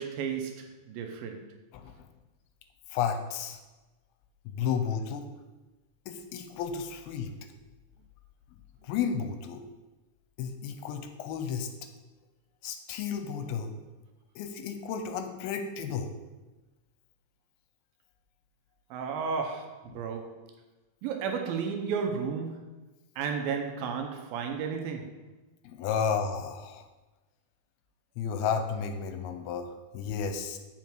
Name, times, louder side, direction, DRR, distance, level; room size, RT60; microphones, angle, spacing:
voice 1, 0.0-1.5 18.9-20.4 21.0-22.8 23.2-25.2, right 6 dB, 80° right, 4 dB, 2.3 m, -33 dB
voice 2, 2.9-3.6 4.5-5.3 6.1-7.3 8.8-9.6 10.4-11.7 12.6-13.7 14.4-16.1 19.9-20.0 25.6-26.8 28.2-30.6, left 7 dB, 85° left, 7 dB, 2.5 m, -32 dB
7.3 x 5.6 x 4.5 m, 1.1 s
omnidirectional pair, 4.4 m